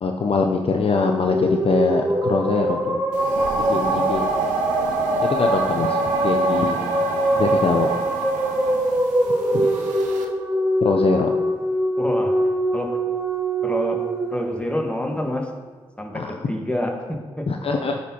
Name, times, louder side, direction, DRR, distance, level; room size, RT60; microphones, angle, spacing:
voice 1, 0.0-3.0 3.7-4.3 5.3-6.8 7.4-7.9 9.5-9.7 10.8-11.3 16.1-16.3 17.5-18.0, left 4 dB, 50° left, 3 dB, 0.5 m, -22 dB
sound 1, 0.9-15.3, right 1 dB, 20° right, 1.0 m, -23 dB
sound 2, 3.1-10.2, right 4 dB, 85° right, 0.5 m, -28 dB
voice 2, 12.0-12.3 12.7-13.0 13.6-14.0 14.3-15.5 16.0-17.4, left 1 dB, 10° left, 1 dB, 1.4 m, -27 dB
10.0 x 4.3 x 2.8 m, 1.4 s
supercardioid pair, 40°, 13 cm